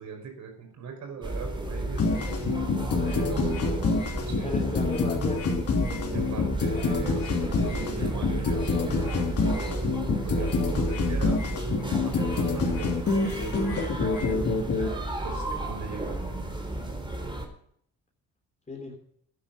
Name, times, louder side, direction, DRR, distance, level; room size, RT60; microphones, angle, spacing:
voice 1, 0.0-2.2 2.5-2.7 3.0-4.0 4.3-4.7 6.1-9.9 10.2-16.2, right 6 dB, 70° right, 3 dB, 5.1 m, -40 dB
sound 1, 1.2-17.5, right 1 dB, 15° right, 3.3 m, -33 dB
sound 2, 2.0-14.9, left 3 dB, 55° left, 3.1 m, -27 dB
voice 2, 4.2-5.6 18.7-19.0, left 3 dB, 25° left, 0 dB, 3.7 m, -36 dB
12.0 x 10.5 x 5.8 m, 0.65 s
cardioid pair, 90°, 30 cm